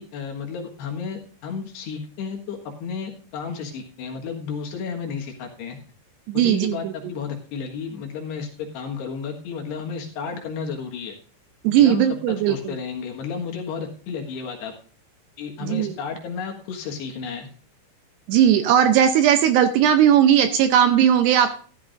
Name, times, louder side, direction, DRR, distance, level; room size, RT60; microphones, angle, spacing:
voice 1, 0.0-5.8 6.3-11.1 11.8-14.7 15.4-17.5, left 6 dB, 70° left, 2 dB, 3.4 m, -32 dB
voice 2, 6.3-6.9 11.6-12.8 15.6-15.9 18.3-21.5, right 9 dB, 80° right, 8 dB, 2.5 m, -18 dB
14.0 x 12.0 x 2.5 m, 0.42 s
omnidirectional pair, 5.3 m